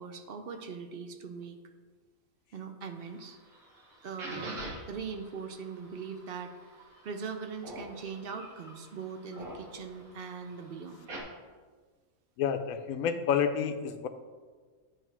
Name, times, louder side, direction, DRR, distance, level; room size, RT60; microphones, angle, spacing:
voice 1, 0.0-1.6 2.5-3.4 4.0-6.8 7.0-11.1, right 5 dB, 55° right, 6 dB, 0.7 m, -41 dB
sound 1, 3.0-11.2, right 1 dB, 85° right, 1.9 m, -47 dB
voice 2, 12.4-14.1, left 7 dB, 80° left, 9 dB, 1.0 m, -29 dB
9.0 x 3.3 x 6.0 m, 1.5 s
omnidirectional pair, 1.5 m